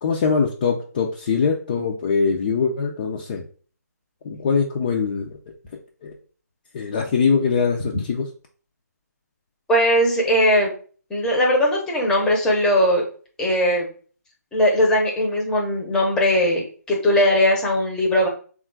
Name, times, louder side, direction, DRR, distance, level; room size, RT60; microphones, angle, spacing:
voice 1, 0.0-3.4 4.2-5.3 6.0-6.1 6.7-8.3, left 5 dB, 30° left, 1 dB, 0.5 m, -22 dB
voice 2, 9.7-10.7 11.1-13.0 13.4-13.9 14.5-18.3, equal, 5° left, -1 dB, 0.8 m, -19 dB
3.6 x 2.4 x 4.5 m, 0.41 s
figure-of-eight pair, 150°, 9 cm